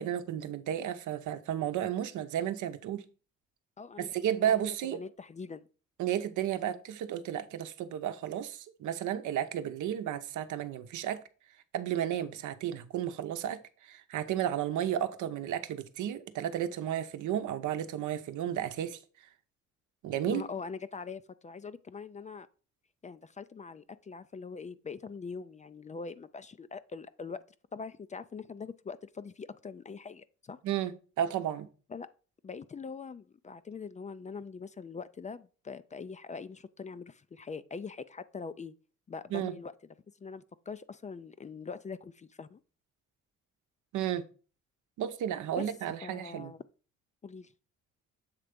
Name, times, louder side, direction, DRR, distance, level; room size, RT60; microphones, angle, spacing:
voice 1, 0.0-3.0 4.0-5.0 6.0-11.2 11.7-19.0 20.0-20.4 30.6-31.7 39.3-39.6 43.9-44.2 45.0-46.5, right 10 dB, 80° right, 0.8 m, -33 dB
voice 2, 3.8-4.2 4.4-4.6 4.9-5.7 20.2-22.5 23.0-27.4 27.7-30.6 31.9-32.1 32.4-38.7 39.1-39.7 40.2-42.6 45.6-45.7 46.0-46.6 47.2-47.5, left 5 dB, 25° left, 0.4 m, -43 dB
7.4 x 3.3 x 5.1 m
cardioid pair, 90°, 30 cm